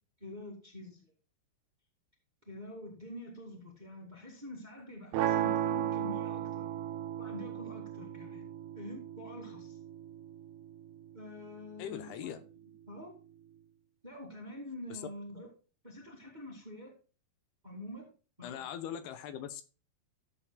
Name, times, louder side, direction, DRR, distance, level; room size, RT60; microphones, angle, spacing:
voice 1, 0.2-1.1 2.5-6.7 7.2-8.5 8.7-9.8 11.1-12.4 12.9-13.1 14.0-15.5 15.8-16.9 17.6-18.1 18.4-18.7, left 1 dB, 15° right, 0 dB, 1.7 m, -46 dB
sound 1, 5.1-11.2, right 11 dB, 80° right, 2.5 m, -35 dB
voice 2, 11.8-12.4 14.9-15.0 18.4-19.6, left 9 dB, 80° left, 10 dB, 2.8 m, -40 dB
14.0 x 7.9 x 2.3 m, 0.35 s
omnidirectional pair, 4.7 m